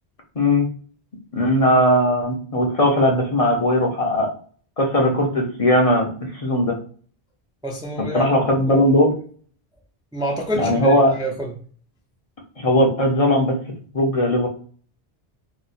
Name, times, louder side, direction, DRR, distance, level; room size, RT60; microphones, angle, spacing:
voice 1, 0.4-0.7 1.3-4.3 4.8-6.8 8.1-9.1 10.5-11.1 12.6-13.6 13.9-14.5, left 1 dB, 40° left, 0.6 m, -18 dB
voice 2, 7.6-8.8 10.1-11.5, right 1 dB, 5° right, 0.3 m, -28 dB
2.9 x 2.0 x 4.0 m
omnidirectional pair, 1.0 m